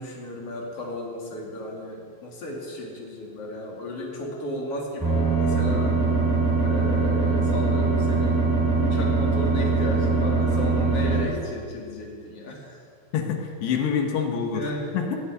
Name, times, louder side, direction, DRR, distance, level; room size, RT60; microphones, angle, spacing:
voice 1, 0.0-5.9 6.6-8.5 8.8-12.8 14.5-14.8, left 1 dB, 35° left, -2 dB, 2.9 m, -34 dB
sound 1, 5.0-11.2, right 4 dB, 5° right, 2.3 m, -22 dB
voice 2, 13.1-15.2, left 6 dB, 70° left, 3 dB, 3.2 m, -26 dB
18.5 x 7.5 x 9.1 m, 2.3 s
omnidirectional pair, 5.4 m